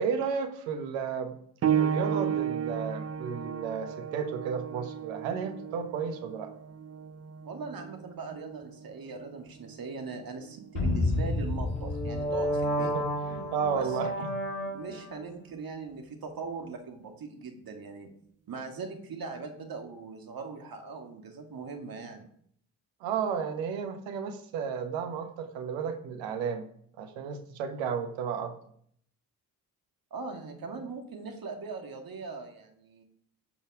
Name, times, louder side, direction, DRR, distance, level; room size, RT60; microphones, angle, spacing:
voice 1, 0.0-1.4 1.8-6.5 12.8-14.3 23.0-26.6 27.0-28.5, right 6 dB, 75° right, 8 dB, 1.4 m, -33 dB
sound 1, 1.6-11.8 12.8-12.9 13.7-13.8, right 8 dB, 35° right, 0.7 m, -34 dB
voice 2, 7.4-13.0 13.7-14.1 14.7-18.1 18.5-22.3 30.1-33.0, right 4 dB, 50° right, 4 dB, 2.4 m, -40 dB
sound 2, 10.8-15.2, left 1 dB, 75° left, 4.5 m, -30 dB
16.5 x 5.6 x 4.9 m, 0.66 s
hypercardioid pair, 50°, 46 cm